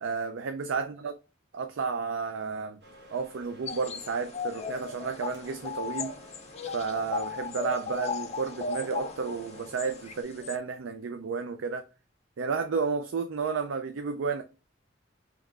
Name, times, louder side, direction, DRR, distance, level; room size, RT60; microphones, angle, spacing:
voice 1, 0.0-1.1 1.5-2.8 3.1-6.2 6.7-11.8 12.4-14.4, right 5 dB, 85° right, 0.4 m, -32 dB
sound 1, 2.8-10.2, equal, 60° right, 1.3 m, -52 dB
sound 2, 3.7-10.6, left 5 dB, 35° left, 0.4 m, -36 dB
5.4 x 2.9 x 2.4 m
head